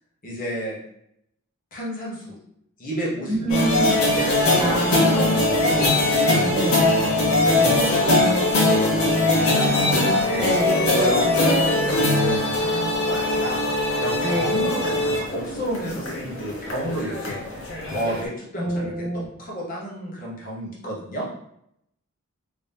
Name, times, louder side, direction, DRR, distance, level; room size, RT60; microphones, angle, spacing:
voice 1, 0.2-0.8 1.7-2.4 2.8-3.6 4.0-5.9 6.2-7.0 7.6-10.5 11.0-13.6 14.0-21.3, right 1 dB, 40° left, -4 dB, 1.1 m, -31 dB
voice 2, 3.4-4.0 4.6-5.4 6.5-6.8 7.5-7.8 10.4-11.5 14.2-14.6 18.6-19.3, right 1 dB, 15° right, -5 dB, 0.6 m, -27 dB
sound 1, 3.5-18.2, left 2 dB, 65° left, 0.9 m, -21 dB
3.1 x 2.7 x 3.4 m, 0.74 s
head